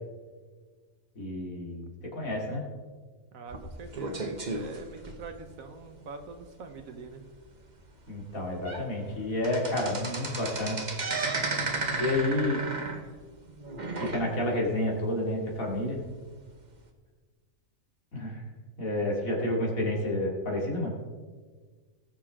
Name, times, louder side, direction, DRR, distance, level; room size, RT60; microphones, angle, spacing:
voice 1, 1.1-2.6 8.1-10.8 12.0-12.7 14.0-16.0 18.1-18.4 18.8-20.9, left 1 dB, 90° left, -2 dB, 3.1 m, -30 dB
voice 2, 3.3-7.2, right 4 dB, 85° right, 7 dB, 1.6 m, -44 dB
sound 1, 3.5-5.7 6.2-6.4 6.7-6.8 7.3-7.4 8.1-8.2 8.5-8.9 9.1-14.7 15.0-15.1 15.9-16.0, right 3 dB, 35° right, 1.2 m, -34 dB
19.5 x 6.6 x 3.7 m, 1.5 s
omnidirectional pair, 1.4 m